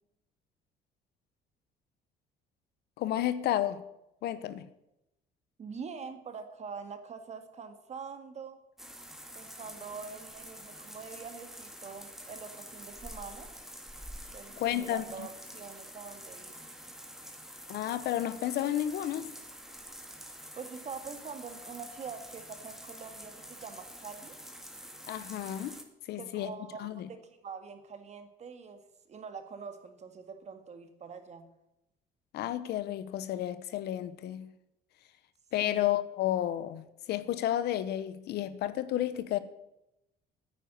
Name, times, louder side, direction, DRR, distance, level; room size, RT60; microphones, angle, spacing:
voice 1, 3.0-3.8 4.2-4.7 14.6-15.3 17.7-19.3 25.1-25.8 26.1-26.5 26.8-27.1 32.3-34.5 35.5-39.4, left 12 dB, 75° left, 1.1 m, -32 dB
voice 2, 5.6-8.6 9.3-13.5 14.3-16.6 20.6-24.4 26.1-28.8 29.1-31.5 35.6-35.8, right 5 dB, 40° right, 2.0 m, -44 dB
sound 1, 8.8-25.8, equal, ahead, 1.9 m, -47 dB
9.7 x 9.3 x 9.5 m
cardioid pair, 110°, 17 cm